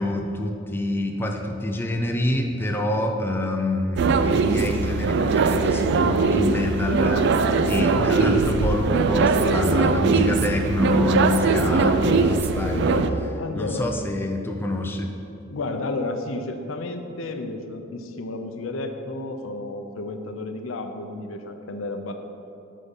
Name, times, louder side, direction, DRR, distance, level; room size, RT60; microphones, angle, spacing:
voice 1, 0.0-15.1, left 1 dB, 10° left, 2 dB, 0.4 m, -26 dB
sound 1, 4.0-13.1, right 4 dB, 60° right, 0.3 m, -21 dB
voice 2, 13.4-13.9 15.5-22.1, left 2 dB, 70° left, 6 dB, 0.5 m, -32 dB
8.0 x 3.7 x 5.2 m, 2.7 s
head